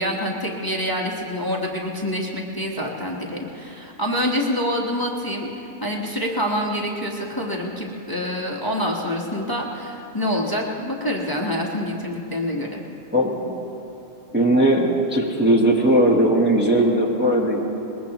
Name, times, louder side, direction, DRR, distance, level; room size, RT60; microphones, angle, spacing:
voice 1, 0.0-5.5 5.8-12.8, equal, 15° left, -2 dB, 1.3 m, -26 dB
voice 2, 13.1-13.6 14.3-17.7, right 1 dB, 10° right, -2 dB, 1.2 m, -18 dB
22.0 x 21.0 x 3.0 m, 3.0 s
omnidirectional pair, 1.4 m